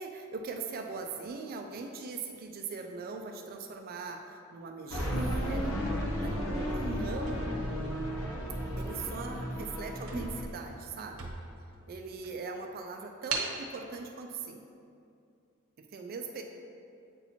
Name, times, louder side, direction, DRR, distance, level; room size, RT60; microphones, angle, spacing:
voice 1, 0.0-5.8 6.2-7.4 8.8-11.3 11.9-14.6 15.8-16.4, right 4 dB, 45° right, 4 dB, 0.4 m, -40 dB
sound 1, 4.9-10.4, equal, 80° left, 0.9 m, -33 dB
sound 2, 7.2-8.5 9.1-9.3 9.6-9.7 10.0-11.7 12.2-12.3 13.3-13.6, right 4 dB, 75° right, 0.7 m, -38 dB
8.0 x 2.8 x 4.2 m, 2.5 s
head